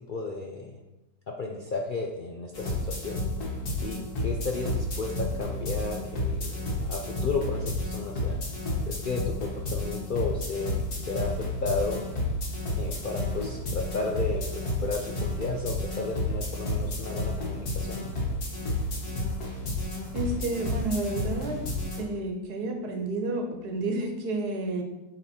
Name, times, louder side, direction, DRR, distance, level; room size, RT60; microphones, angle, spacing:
voice 1, 0.1-0.8 1.3-3.2 3.8-6.6 6.9-8.4 8.9-11.3 11.6-12.1 12.7-18.1, left 3 dB, 60° left, 0 dB, 0.5 m, -33 dB
sound 1, 2.5-22.0, left 1 dB, 80° left, 2.1 m, -31 dB
voice 2, 20.1-21.6 22.0-24.8, right 2 dB, 90° right, 4 dB, 1.5 m, -30 dB
7.9 x 4.0 x 4.3 m, 0.98 s
omnidirectional pair, 1.6 m